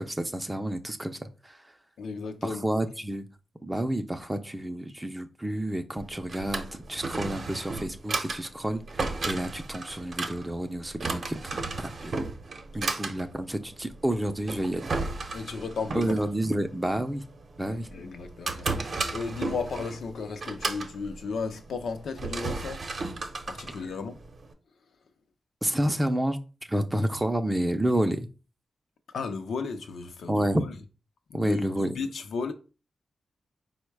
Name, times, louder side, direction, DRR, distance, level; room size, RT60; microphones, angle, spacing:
voice 1, 0.0-1.6 2.4-3.3 3.6-12.2 12.7-14.9 15.9-17.2 17.6-17.9 25.6-26.4 26.7-28.3 30.3-30.6 31.3-31.9, right 1 dB, 15° right, 0.4 m, -29 dB
voice 2, 2.0-2.7 15.3-16.3 17.6-22.9 23.5-24.2 29.1-30.7 31.3-32.5, left 4 dB, 85° left, 0.5 m, -35 dB
Drawer open or close, 6.0-24.5, right 3 dB, 50° right, 0.7 m, -35 dB
4.5 x 2.1 x 4.5 m
wide cardioid pair, 95°, 0 cm